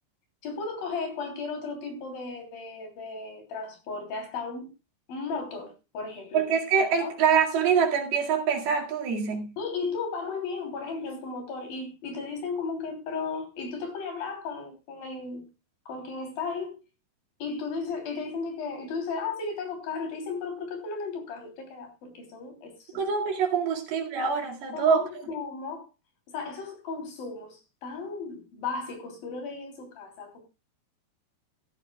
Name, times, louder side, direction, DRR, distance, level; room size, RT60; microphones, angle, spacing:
voice 1, 0.4-4.7 5.1-6.5 7.0-7.1 9.6-15.5 15.9-16.8 17.4-23.0 23.7-23.8 24.7-25.9 26.3-30.4, left 4 dB, 60° left, 4.9 m, -35 dB
voice 2, 6.3-9.5 22.9-25.0, right 6 dB, 70° right, 4.0 m, -25 dB
15.5 x 13.5 x 2.3 m
omnidirectional pair, 4.8 m